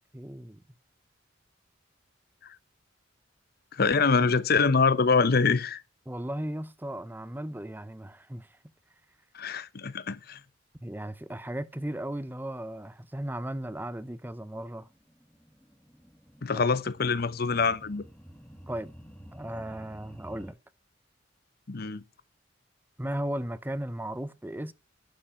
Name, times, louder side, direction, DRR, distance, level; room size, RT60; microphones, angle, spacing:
voice 1, 0.1-0.6 6.1-8.6 10.8-14.9 16.5-16.7 18.7-18.9 19.3-20.6 23.0-24.7, right 1 dB, 10° right, 0.7 m, -36 dB
voice 2, 3.7-5.8 9.3-10.4 16.4-18.0 21.7-22.0, left 4 dB, 55° left, 0.8 m, -25 dB
sound 1, 14.9-20.5, equal, 5° left, 1.5 m, -51 dB
11.5 x 5.6 x 6.9 m
head